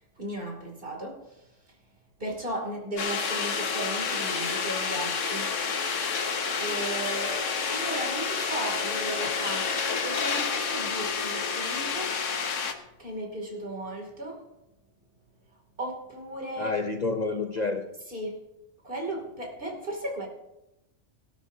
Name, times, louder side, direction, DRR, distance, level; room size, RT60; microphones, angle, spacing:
voice 1, 0.2-1.2 2.2-5.5 6.6-9.7 10.0-12.2 13.0-14.4 15.8-16.7 18.1-18.4 18.8-20.3, right 1 dB, 45° right, 1 dB, 2.8 m, -36 dB
sound 1, 3.0-12.7, left 5 dB, 85° left, 1.4 m, -29 dB
voice 2, 16.6-17.9, left 3 dB, 40° left, 5 dB, 0.7 m, -29 dB
19.0 x 12.0 x 2.7 m, 0.91 s
omnidirectional pair, 1.2 m